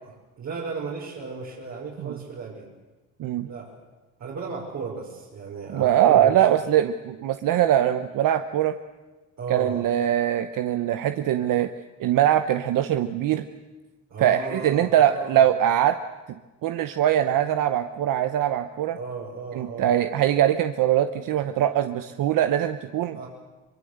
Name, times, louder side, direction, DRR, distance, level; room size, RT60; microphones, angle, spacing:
voice 1, 0.1-2.7 3.4-3.7 4.2-6.5 9.4-9.9 14.1-15.4 18.9-19.9 23.1-23.3, right 4 dB, 55° right, -4 dB, 5.2 m, -35 dB
voice 2, 5.7-8.7 9.5-11.7 12.0-13.4 14.2-16.0 16.6-19.0 19.6-23.2, right 11 dB, 70° right, 9 dB, 1.0 m, -22 dB
24.0 x 22.5 x 8.1 m, 1.2 s
cardioid pair, 125°, 33 cm